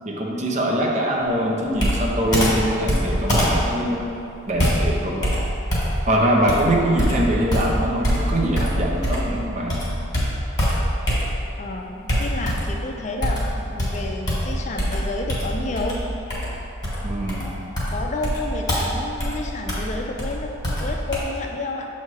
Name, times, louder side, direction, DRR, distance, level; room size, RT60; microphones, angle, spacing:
voice 1, 0.1-4.0 4.5-5.3 6.1-9.8 17.0-17.5, right 1 dB, 35° right, -2 dB, 0.6 m, -23 dB
Computer keyboard, 1.8-9.4 9.7-11.6 12.1-12.8 13.2-21.2, equal, 20° left, 1.3 m, -24 dB
voice 2, 6.7-7.1 11.6-16.0 17.9-21.9, left 2 dB, 35° left, 2 dB, 0.4 m, -30 dB
7.2 x 2.8 x 4.7 m, 2.8 s
head